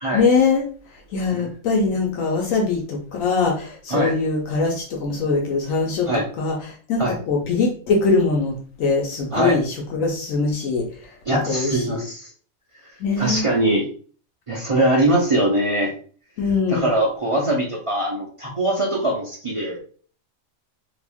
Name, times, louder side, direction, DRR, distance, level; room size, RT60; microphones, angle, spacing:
voice 1, 0.1-0.6 1.1-6.1 6.4-6.5 6.9-10.8 11.5-11.8 13.0-13.4 16.4-16.9, left 4 dB, 75° left, -1 dB, 1.1 m, -22 dB
voice 2, 11.3-12.3 13.2-13.9 14.5-15.9 16.7-19.8, right 1 dB, 50° right, -3 dB, 0.4 m, -22 dB
2.8 x 2.5 x 3.5 m, 0.43 s
omnidirectional pair, 1.4 m